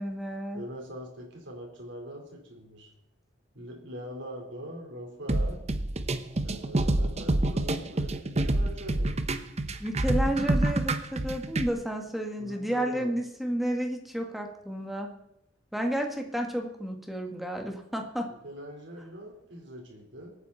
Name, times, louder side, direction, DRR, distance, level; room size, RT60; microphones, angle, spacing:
voice 1, 0.0-0.6 9.8-15.1 15.7-18.3, right 1 dB, ahead, 2 dB, 1.9 m, -31 dB
voice 2, 0.5-2.9 3.5-5.7 6.4-9.2 12.4-13.1 18.4-20.4, equal, 65° right, 1 dB, 4.1 m, -42 dB
sound 1, 5.3-11.7, right 1 dB, 35° right, 0.8 m, -27 dB
23.5 x 9.5 x 4.2 m, 0.78 s
head